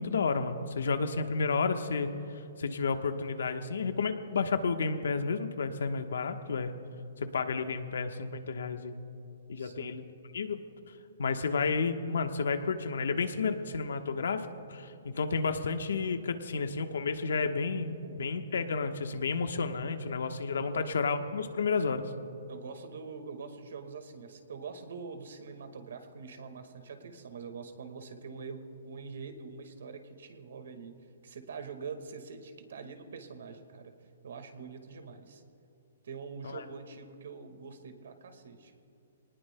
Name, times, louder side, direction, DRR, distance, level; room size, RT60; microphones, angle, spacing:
voice 1, 0.0-2.1 2.6-6.7 7.2-9.0 9.5-10.0 10.3-10.6 11.2-22.0 36.4-36.6, left 4 dB, 85° left, 7 dB, 1.1 m, -31 dB
voice 2, 9.6-9.9 18.0-18.4 20.6-20.9 22.5-31.0 31.2-33.9 34.2-35.4 36.0-38.7, right 5 dB, 70° right, 7 dB, 1.7 m, -44 dB
25.0 x 19.0 x 2.2 m, 2.7 s
hypercardioid pair, 170°, 0 cm